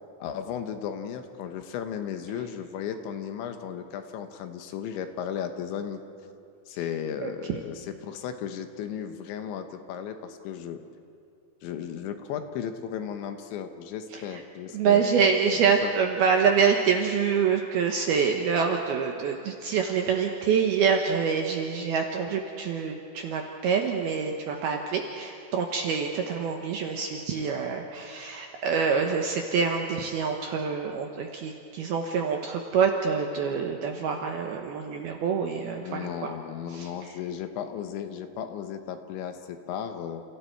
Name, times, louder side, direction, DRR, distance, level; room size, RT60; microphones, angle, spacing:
voice 1, 0.2-6.0 6.7-10.8 11.6-15.0 15.8-15.9 35.8-40.2, left 8 dB, 75° left, 7 dB, 3.1 m, -35 dB
voice 2, 7.2-7.6 14.1-14.2 14.7-36.3 36.7-36.9, right 6 dB, 70° right, 2 dB, 2.4 m, -26 dB
30.0 x 29.0 x 4.6 m, 2.5 s
omnidirectional pair, 5.9 m